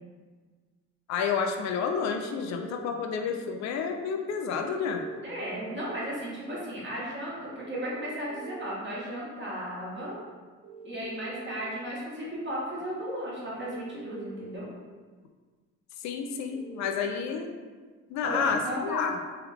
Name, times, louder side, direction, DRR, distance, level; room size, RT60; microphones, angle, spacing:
voice 1, 1.1-5.0 16.0-17.5 18.1-19.2, left 6 dB, 65° left, 4 dB, 0.4 m, -30 dB
Ringing Call Tone UK, 1.8-2.8 4.8-5.8 7.7-8.7 10.6-11.6 13.6-14.5 16.5-16.9, right 4 dB, 60° right, 0.6 m, -45 dB
voice 2, 5.2-10.2 10.8-14.7 18.2-19.2, equal, 40° right, -7 dB, 1.4 m, -35 dB
3.4 x 2.2 x 3.3 m, 1.4 s
cardioid pair, 90°, 30 cm